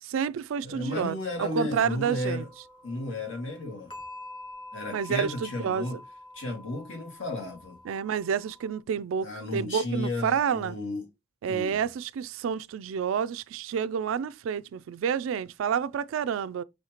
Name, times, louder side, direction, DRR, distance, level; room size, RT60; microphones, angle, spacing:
voice 1, 0.0-2.4 4.9-5.9 7.9-10.8 11.4-16.6, right 7 dB, 85° right, 0.3 m, -29 dB
voice 2, 0.6-2.5 2.8-3.9 4.7-6.0 6.3-7.8 9.2-11.1 11.5-11.8, left 2 dB, 75° left, 1.8 m, -33 dB
sound 1, 2.0-8.8, left 1 dB, 25° left, 0.9 m, -47 dB
6.4 x 2.7 x 2.9 m
head